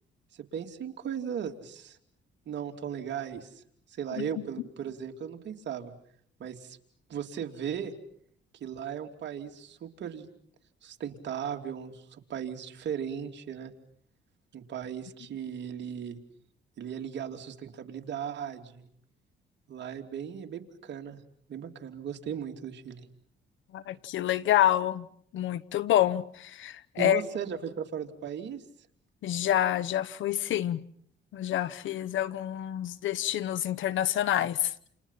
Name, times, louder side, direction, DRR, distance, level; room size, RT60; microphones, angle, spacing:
voice 1, 0.3-2.0 2.5-3.6 3.9-5.9 6.4-6.8 7.1-7.9 8.6-10.3 10.8-13.7 14.5-16.2 16.8-18.8 19.7-21.2 21.5-23.1 27.0-28.6, right 8 dB, 65° right, 3.1 m, -37 dB
voice 2, 23.7-25.1 25.3-27.2 29.2-30.8 31.3-34.7, left 12 dB, 80° left, 1.1 m, -27 dB
30.0 x 29.0 x 5.8 m
cardioid pair, 90°, 20 cm